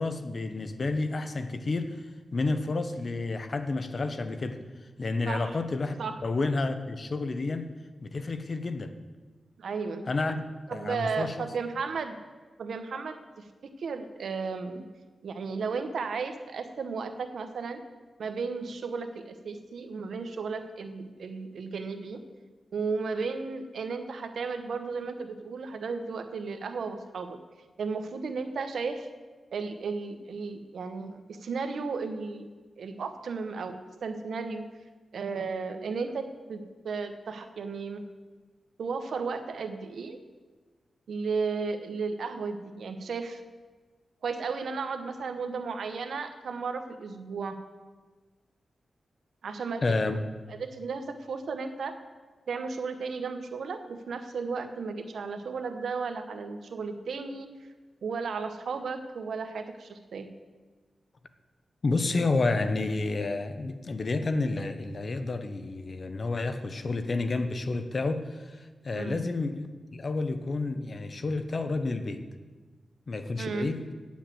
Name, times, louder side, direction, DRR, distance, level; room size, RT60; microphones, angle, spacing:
voice 1, 0.0-4.6 5.0-6.0 6.2-7.7 8.0-8.9 10.1-10.4 10.7-11.3 49.8-50.2 61.8-72.2 73.1-73.9, left 3 dB, 45° left, 9 dB, 0.8 m, -30 dB
voice 2, 5.3-5.6 6.0-6.1 9.6-10.0 10.7-12.2 12.6-13.5 13.8-14.8 15.2-17.8 18.2-22.2 22.7-27.4 27.8-29.1 29.5-32.5 32.8-34.6 35.1-38.0 38.8-40.2 41.1-43.4 44.2-47.6 49.4-49.8 50.1-50.2 50.5-51.9 52.5-57.5 58.0-60.3 68.9-69.2 73.4-73.7, right 4 dB, 80° right, 8 dB, 0.9 m, -34 dB
9.1 x 7.2 x 7.6 m, 1.3 s
wide cardioid pair, 110°, 0 cm